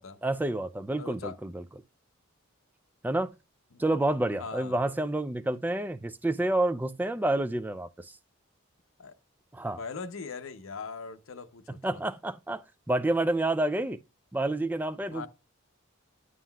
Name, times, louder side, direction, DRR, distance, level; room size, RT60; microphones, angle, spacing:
voice 1, 0.2-1.6 3.0-3.3 3.8-8.1 9.5-9.8 11.8-14.0 14.3-15.3, right 1 dB, 10° right, 0.3 m, -29 dB
voice 2, 1.0-1.4 3.7-3.8 4.4-4.8 9.0-9.1 9.7-12.0 15.1-15.3, left 5 dB, 70° left, 0.7 m, -40 dB
9.8 x 7.6 x 2.3 m
head